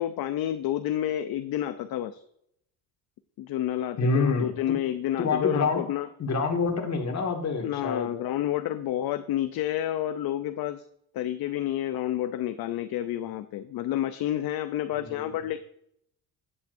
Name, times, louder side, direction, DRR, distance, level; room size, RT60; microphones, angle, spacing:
voice 1, 0.0-2.2 3.4-6.1 7.6-10.8 11.1-15.6, left 12 dB, 60° left, 10 dB, 0.6 m, -29 dB
voice 2, 4.0-4.8 5.2-5.9 6.2-8.1 14.9-15.3, left 4 dB, 40° left, 3 dB, 2.0 m, -27 dB
11.5 x 8.6 x 2.6 m, 0.72 s
cardioid pair, 105°, 42 cm